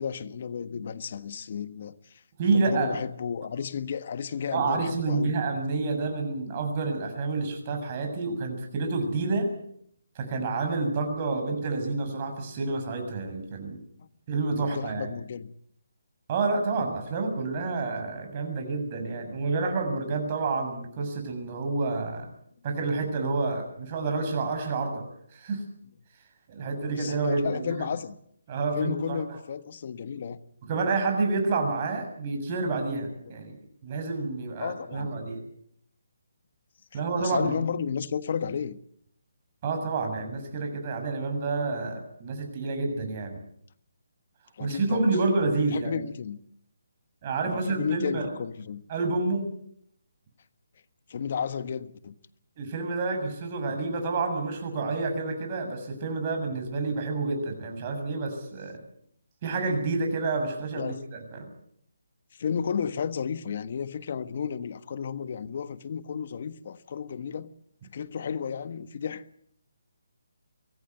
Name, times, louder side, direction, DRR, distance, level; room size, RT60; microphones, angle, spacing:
voice 1, 0.0-2.2 2.5-5.4 14.5-15.5 26.9-28.2 28.7-30.4 34.6-35.2 36.9-38.8 44.6-45.1 45.7-46.4 47.4-48.8 51.1-52.1 60.7-61.0 62.3-67.5 67.9-69.2, left 7 dB, 50° left, 1.4 m, -33 dB
voice 2, 2.4-3.0 4.5-9.5 10.1-13.8 14.3-15.1 16.3-22.3 22.6-25.0 25.3-25.6 26.5-27.9 28.5-29.2 30.7-35.4 36.9-37.5 39.6-43.4 44.6-46.0 47.2-48.3 48.9-49.5 52.6-58.8 59.4-61.5, right 3 dB, 35° right, 6.8 m, -29 dB
24.0 x 17.0 x 8.0 m
figure-of-eight pair, 155°, 0 cm